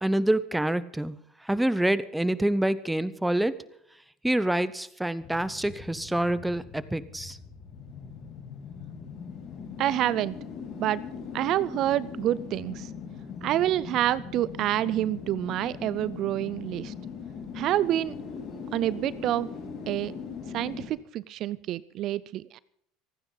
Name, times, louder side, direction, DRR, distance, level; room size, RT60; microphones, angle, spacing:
voice 1, 0.0-1.1 1.4-3.6 4.2-7.4, right 1 dB, 5° right, 16 dB, 0.8 m, -26 dB
sound 1, 5.2-20.9, left 6 dB, 45° left, 6.2 m, -40 dB
voice 2, 9.8-10.4 10.8-11.0 11.3-12.9 13.4-16.9 17.5-18.1 18.7-19.5 19.9-20.1 20.5-22.6, right 13 dB, 55° right, 19 dB, 0.5 m, -27 dB
27.0 x 9.8 x 4.0 m, 0.72 s
supercardioid pair, 110°, 0 cm